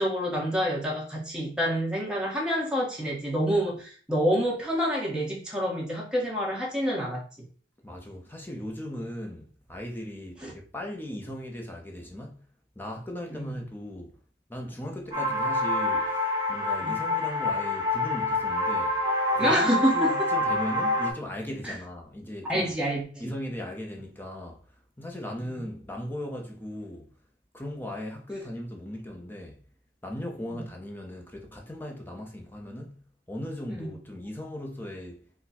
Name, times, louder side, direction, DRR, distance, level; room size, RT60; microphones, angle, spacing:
voice 1, 0.0-7.4 10.4-10.5 13.3-13.6 16.8-17.0 19.4-20.3 21.6-21.7 22.4-23.3 30.5-30.6 33.7-33.9, equal, 5° right, 1.3 m, -28 dB
voice 2, 7.8-12.4 12.8-14.2 14.5-19.0 19.3-22.8 23.2-24.6 25.0-27.1 27.5-29.6 30.0-33.0 33.3-35.2, left 1 dB, 10° left, 0.8 m, -38 dB
sound 1, 15.1-21.1, left 1 dB, 25° right, 1.0 m, -26 dB
4.3 x 2.2 x 4.2 m
head